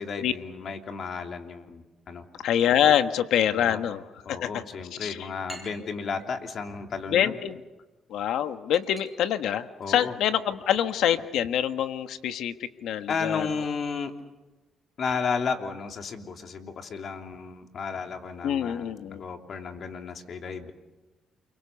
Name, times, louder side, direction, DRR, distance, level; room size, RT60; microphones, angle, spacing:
voice 1, 0.0-2.3 3.5-3.8 4.2-7.4 9.8-10.1 13.1-14.1 15.0-20.7, left 5 dB, 55° left, 5 dB, 3.0 m, -33 dB
voice 2, 2.4-4.0 4.3-4.6 5.0-5.3 7.1-7.6 8.1-13.5 18.4-19.2, left 10 dB, 80° left, 9 dB, 1.4 m, -25 dB
sound 1, 4.7-14.6, right 1 dB, 10° left, 8.0 m, -54 dB
29.0 x 24.0 x 7.0 m, 1.1 s
cardioid pair, 90°, 0 cm